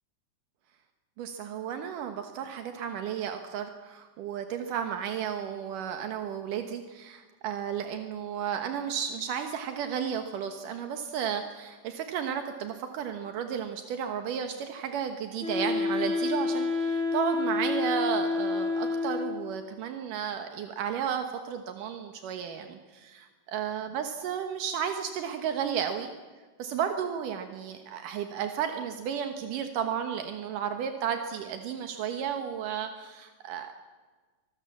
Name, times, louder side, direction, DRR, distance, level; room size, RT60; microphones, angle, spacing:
voice 1, 1.2-26.1 26.6-33.7, right 8 dB, 80° right, 6 dB, 2.8 m, -33 dB
Wind instrument woodwind instrument, 15.4-19.5, left 3 dB, ahead, 5.5 m, -29 dB
24.5 x 20.5 x 7.3 m, 1.4 s
omnidirectional pair, 3.7 m